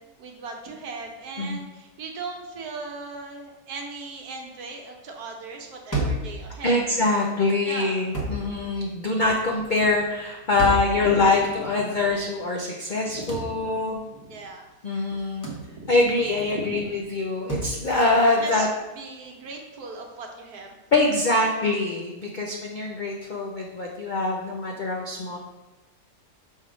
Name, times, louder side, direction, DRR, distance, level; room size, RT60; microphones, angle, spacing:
voice 1, 0.0-6.8 7.7-8.1 10.6-11.5 11.8-11.9 13.0-13.7 14.1-14.6 15.5-15.9 16.5-16.8 18.4-18.7 18.9-20.8, right 3 dB, 65° right, 2 dB, 1.4 m, -38 dB
sound 1, 5.9-6.3 8.1-8.5 10.6-11.0 13.3-13.5 15.4-15.7 17.5-17.8, right 1 dB, 15° left, 0.7 m, -28 dB
voice 2, 6.6-14.0 14.8-15.5 15.9-18.7 20.9-25.4, left 2 dB, 85° left, -1 dB, 0.4 m, -24 dB
6.4 x 3.6 x 4.9 m, 1.1 s
omnidirectional pair, 1.8 m